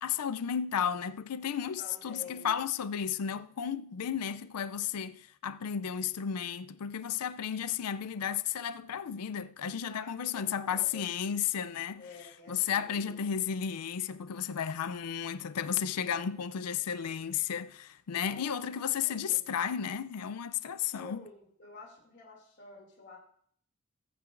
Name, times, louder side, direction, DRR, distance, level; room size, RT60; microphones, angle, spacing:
voice 1, 0.0-12.0 12.5-21.2, left 8 dB, 85° left, 0.4 m, -33 dB
voice 2, 1.8-2.6 9.9-11.1 12.0-13.2 16.0-16.7 18.3-19.6 20.9-23.2, left 3 dB, 55° left, 2.5 m, -50 dB
20.0 x 8.9 x 2.5 m
head